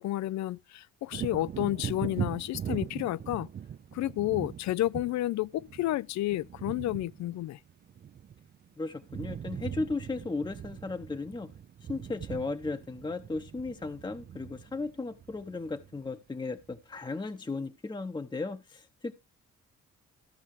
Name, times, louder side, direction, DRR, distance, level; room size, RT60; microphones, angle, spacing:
voice 1, 0.0-3.5 3.9-7.6, left 15 dB, 65° left, 0.4 m, -31 dB
Wind / Thunder, 1.1-8.7 8.9-16.2 16.6-16.7, right 9 dB, 35° right, 0.5 m, -41 dB
voice 2, 8.8-11.5 11.9-19.1, left 3 dB, 15° left, 0.8 m, -36 dB
14.5 x 5.5 x 4.8 m
cardioid pair, 90°, 30 cm